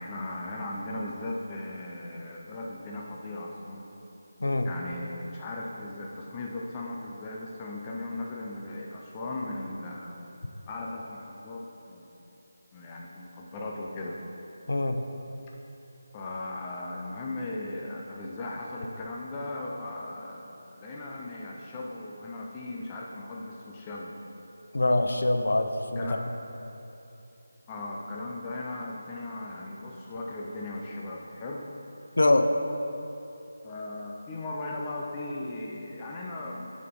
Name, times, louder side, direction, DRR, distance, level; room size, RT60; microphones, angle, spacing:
voice 1, 0.0-3.9 4.6-10.1 10.7-12.2 12.7-14.2 16.1-24.2 26.0-26.2 27.7-31.7 33.6-36.7, left 2 dB, 15° left, -2 dB, 0.4 m, -37 dB
voice 2, 4.4-4.7 14.7-15.1 24.7-26.1 32.2-32.5, left 2 dB, 75° left, 6 dB, 0.6 m, -24 dB
7.4 x 4.2 x 5.3 m, 2.9 s
figure-of-eight pair, 175°, 0 cm